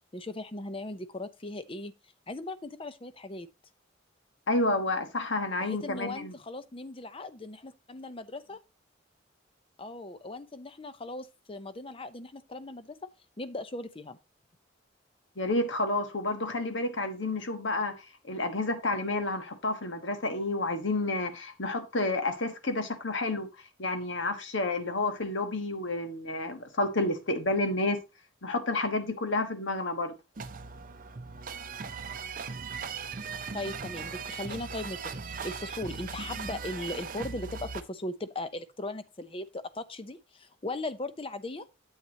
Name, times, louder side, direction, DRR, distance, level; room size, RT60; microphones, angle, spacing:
voice 1, 0.1-1.9 2.3-3.5 5.6-8.6 9.8-13.1 13.4-14.2 33.5-41.7, left 2 dB, 25° left, 0.6 m, -38 dB
voice 2, 4.5-6.4 15.4-17.9 18.3-23.5 23.8-28.0 28.4-30.1, left 2 dB, 65° left, 1.4 m, -30 dB
sound 1, 30.4-37.8, right 5 dB, 45° right, 0.6 m, -38 dB
9.3 x 8.1 x 2.8 m
head